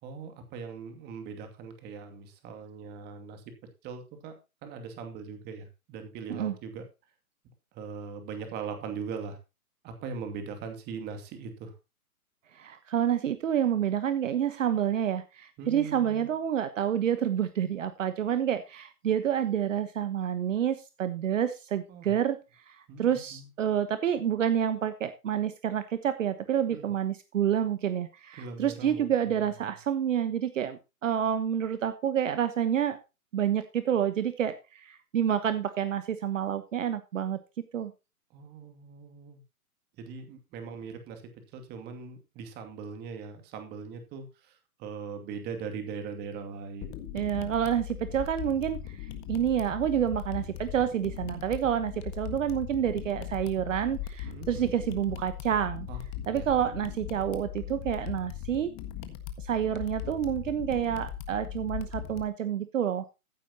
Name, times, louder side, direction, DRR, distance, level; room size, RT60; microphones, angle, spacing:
voice 1, 0.0-3.5 3.8-4.3 4.6-6.8 7.7-9.4 9.8-11.8 15.6-16.3 21.9-22.1 22.9-23.5 26.7-26.9 28.4-29.5 38.3-39.4 40.0-47.1 54.3-54.7 55.9-56.5, right 5 dB, 20° right, 6 dB, 2.5 m, -40 dB
voice 2, 12.5-22.4 22.7-33.0 33.3-37.4 37.7-37.9 47.1-55.9 56.3-58.7 59.4-63.0, right 9 dB, 55° right, 11 dB, 1.2 m, -28 dB
sound 1, 46.8-62.2, left 11 dB, 25° left, 1.6 m, -39 dB
14.5 x 8.5 x 2.9 m, 0.27 s
hypercardioid pair, 140°, 44 cm